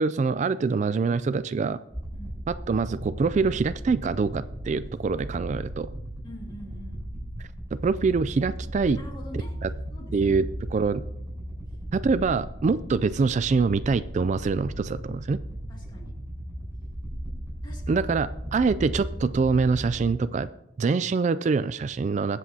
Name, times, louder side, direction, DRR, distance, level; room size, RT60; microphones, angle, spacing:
voice 1, 0.0-1.8 2.5-5.9 7.4-9.0 9.6-9.7 10.1-10.5 10.7-11.0 11.9-15.4 17.9-20.5 20.8-22.4, right 4 dB, 40° right, 14 dB, 0.3 m, -25 dB
sound 1, 1.9-20.3, right 1 dB, 15° right, 4.8 m, -36 dB
voice 2, 6.2-7.1 8.9-10.4 12.8-12.9 15.7-16.2 17.6-18.1, left 1 dB, 25° left, 0 dB, 2.2 m, -45 dB
20.5 x 8.0 x 2.8 m, 0.84 s
head